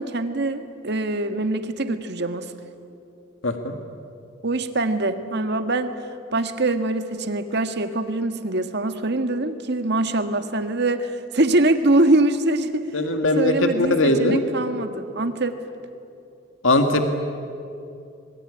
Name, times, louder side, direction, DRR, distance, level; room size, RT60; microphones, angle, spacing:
voice 1, 0.0-2.5 4.4-5.9 6.3-12.8 13.4-15.6, right 2 dB, 60° right, 8 dB, 1.7 m, -23 dB
voice 2, 3.4-3.8 12.9-14.4 16.6-17.2, left 2 dB, 80° left, 6 dB, 1.8 m, -20 dB
26.0 x 22.0 x 9.9 m, 2.7 s
head